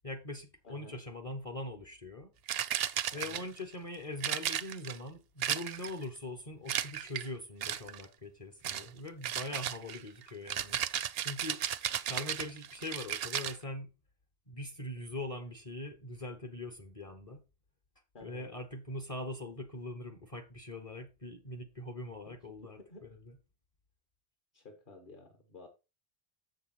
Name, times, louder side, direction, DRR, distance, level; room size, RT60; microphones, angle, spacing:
voice 1, 0.0-2.3 3.1-10.8 11.2-11.6 12.1-13.9 14.5-17.4 18.2-23.3, left 1 dB, 35° left, 1.0 m, -42 dB
voice 2, 0.6-1.0 3.1-3.5 18.1-18.5 22.3-22.4 22.8-23.1 24.5-25.7, left 2 dB, 50° left, 1.6 m, -52 dB
sound 1, 2.5-3.6 4.2-5.0 5.4-6.0 6.7-7.3 7.6-8.0 8.6-8.9 9.2-13.6, right 10 dB, 65° right, 0.8 m, -35 dB
7.1 x 6.6 x 4.3 m
omnidirectional pair, 1.1 m